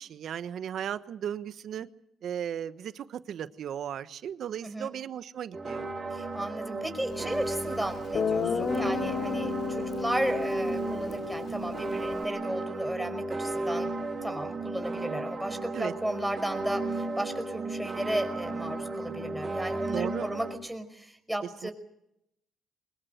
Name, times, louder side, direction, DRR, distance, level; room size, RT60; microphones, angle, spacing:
voice 1, 0.0-1.9 2.2-5.9 15.7-15.9 19.9-20.3 21.6-21.7, right 9 dB, 65° right, 13 dB, 1.2 m, -36 dB
sound 1, 5.5-20.5, right 2 dB, 30° right, 5.7 m, -34 dB
voice 2, 6.1-21.7, right 1 dB, 5° right, 6 dB, 5.1 m, -34 dB
Guitar, 7.6-7.7 8.1-12.3, left 6 dB, 55° left, 2.9 m, -33 dB
24.0 x 20.5 x 8.0 m, 0.77 s
cardioid pair, 90°, 0 cm